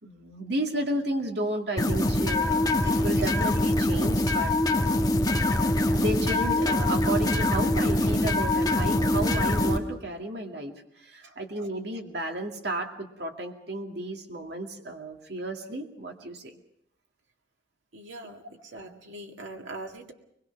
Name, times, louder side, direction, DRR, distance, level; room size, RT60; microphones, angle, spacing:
voice 1, 0.0-4.5 5.9-10.7 11.0-16.6, right 1 dB, 60° right, 3 dB, 2.2 m, -33 dB
sound 1, 1.8-9.8, left 1 dB, 20° left, 1.4 m, -24 dB
voice 2, 17.9-20.1, right 2 dB, 85° right, 2 dB, 2.1 m, -42 dB
24.0 x 21.0 x 6.0 m, 0.77 s
head